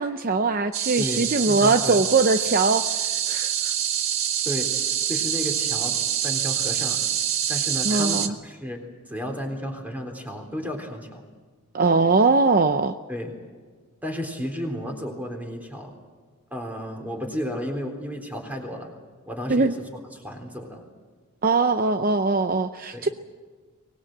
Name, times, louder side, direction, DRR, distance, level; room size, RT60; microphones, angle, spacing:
voice 1, 0.0-3.7 7.8-8.3 11.7-12.9 19.5-19.7 21.4-23.1, right 3 dB, 40° right, 8 dB, 0.7 m, -21 dB
sound 1, 0.7-8.3, right 10 dB, 70° right, 1.5 m, -26 dB
voice 2, 1.0-2.0 4.5-6.0 6.2-7.0 7.5-11.2 13.1-13.3 14.0-15.9 16.5-18.9 19.3-20.8 22.9-23.1, equal, 5° right, 2 dB, 3.8 m, -33 dB
24.0 x 20.0 x 7.9 m, 1.5 s
head